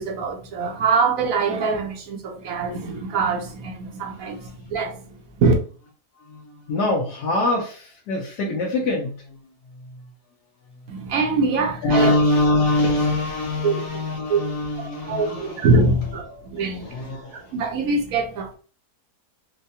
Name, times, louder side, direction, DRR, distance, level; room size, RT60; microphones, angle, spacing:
voice 1, 0.0-5.0 5.4-5.5 10.9-12.1 13.6-13.8 14.3-14.4 15.1-16.3 16.5-16.9 17.3-18.5, right 3 dB, 60° right, 1.0 m, -23 dB
voice 2, 4.0-4.5 6.2-10.0 10.9-11.0 11.8-15.7 16.3-17.5, left 1 dB, 70° left, 1.3 m, -24 dB
4.6 x 2.2 x 2.7 m
omnidirectional pair, 1.8 m